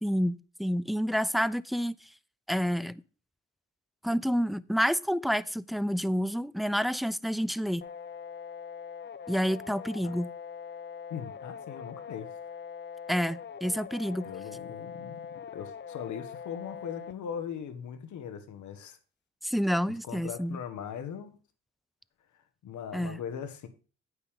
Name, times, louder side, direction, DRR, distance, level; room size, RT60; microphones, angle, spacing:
voice 1, 0.0-1.9 2.5-3.0 4.0-7.9 9.3-10.3 13.1-14.3 19.4-20.6 22.9-23.2, equal, ahead, 0.3 m, -29 dB
sound 1, 7.8-17.1, left 7 dB, 35° left, 0.7 m, -42 dB
voice 2, 11.1-12.3 14.2-15.2 15.5-19.0 20.0-21.4 22.3-23.7, left 8 dB, 75° left, 1.6 m, -40 dB
9.5 x 8.5 x 3.7 m
cardioid pair, 90°, 30 cm